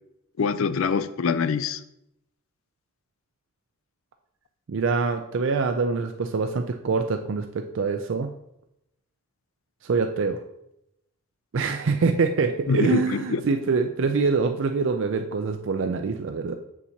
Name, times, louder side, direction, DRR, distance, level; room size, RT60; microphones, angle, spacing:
voice 1, 0.4-1.8 12.7-13.4, left 5 dB, 75° left, 13 dB, 0.4 m, -24 dB
voice 2, 4.7-8.3 9.8-10.4 11.5-16.6, right 4 dB, 60° right, 7 dB, 0.4 m, -25 dB
7.2 x 6.9 x 2.8 m, 0.82 s
head